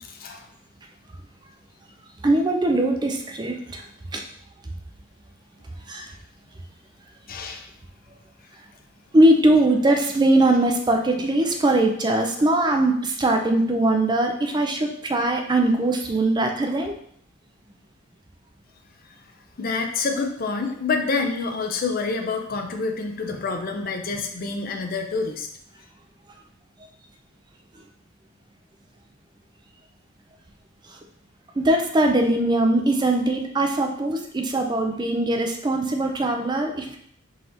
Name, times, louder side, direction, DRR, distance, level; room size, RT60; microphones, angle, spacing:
voice 1, 2.2-3.8 4.1-4.2 5.9-6.1 9.1-16.9 31.6-37.0, right 1 dB, 20° right, 3 dB, 0.4 m, -21 dB
voice 2, 7.3-7.7 19.6-25.5, left 4 dB, 45° left, 5 dB, 0.5 m, -27 dB
4.0 x 2.9 x 3.8 m, 0.65 s
head